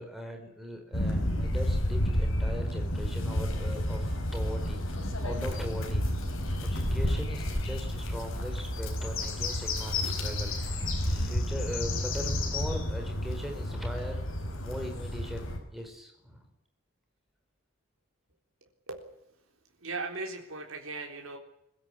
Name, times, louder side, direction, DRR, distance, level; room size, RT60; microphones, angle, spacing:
voice 1, 0.0-4.8 5.2-6.0 6.6-10.8 11.0-14.2 14.6-16.4, equal, ahead, 3 dB, 4.6 m, -40 dB
sound 1, 0.9-15.6, left 1 dB, 70° left, 5.2 m, -31 dB
voice 2, 19.8-21.4, right 3 dB, 80° right, 1 dB, 3.8 m, -37 dB
22.5 x 16.0 x 10.0 m, 0.81 s
head